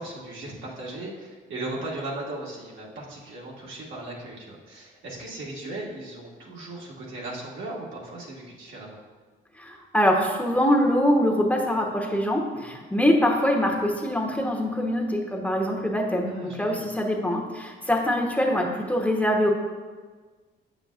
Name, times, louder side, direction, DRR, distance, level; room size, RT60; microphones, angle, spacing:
voice 1, 0.0-9.0 12.5-12.8 16.2-16.8, right 2 dB, 75° right, -4 dB, 1.8 m, -37 dB
voice 2, 9.6-19.5, equal, 5° left, 1 dB, 0.9 m, -24 dB
8.3 x 6.9 x 2.4 m, 1.4 s
cardioid pair, 90°, 20 cm